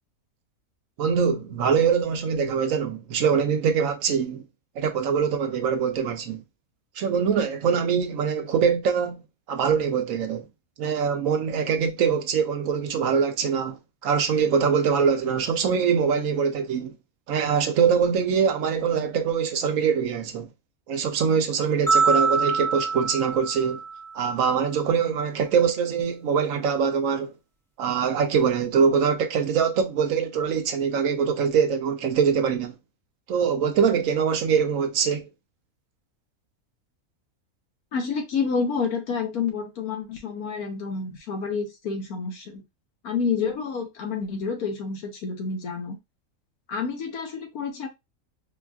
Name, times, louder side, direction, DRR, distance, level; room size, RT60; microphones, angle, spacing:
voice 1, 1.0-4.4 4.8-6.4 7.0-9.2 9.5-10.4 10.8-17.0 17.3-20.5 20.9-23.8 24.1-27.3 27.8-32.8 33.3-35.3, right 6 dB, 70° right, 0.9 m, -23 dB
sound 1, 21.9-24.2, right 5 dB, 5° left, 0.4 m, -24 dB
voice 2, 37.9-42.6 43.0-46.0 46.7-47.9, left 5 dB, 85° left, 1.4 m, -29 dB
4.4 x 2.4 x 2.4 m
omnidirectional pair, 1.6 m